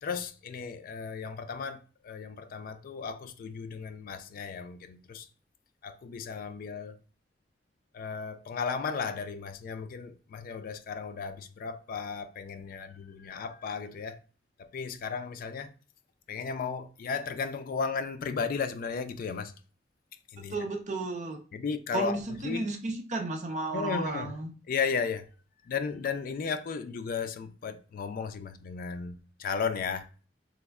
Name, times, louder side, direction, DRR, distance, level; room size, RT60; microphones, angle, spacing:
voice 1, 0.0-5.3 5.8-7.0 7.9-14.2 14.6-15.7 16.3-19.5 20.3-20.6 21.5-22.7 23.7-24.4 24.7-25.2 25.7-30.1, left 5 dB, 50° left, 0.3 m, -35 dB
voice 2, 20.5-21.4 21.9-24.5, right 2 dB, 40° right, 0.5 m, -33 dB
3.2 x 2.0 x 3.4 m
head